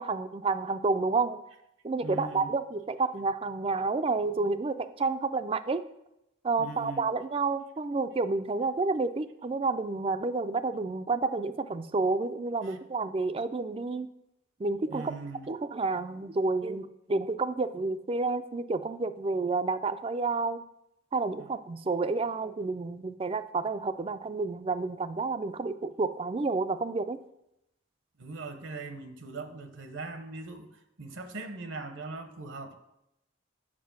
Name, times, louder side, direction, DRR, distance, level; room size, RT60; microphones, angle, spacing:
voice 1, 0.0-1.4 1.8-5.8 6.4-14.1 14.6-15.1 15.5-20.6 21.1-27.2, right 3 dB, 25° right, 12 dB, 0.3 m, -30 dB
voice 2, 2.0-2.5 6.6-7.1 12.6-12.8 14.9-15.5 21.4-21.5 28.2-32.7, right 3 dB, 70° right, 7 dB, 0.8 m, -40 dB
7.4 x 5.1 x 5.8 m, 0.86 s
head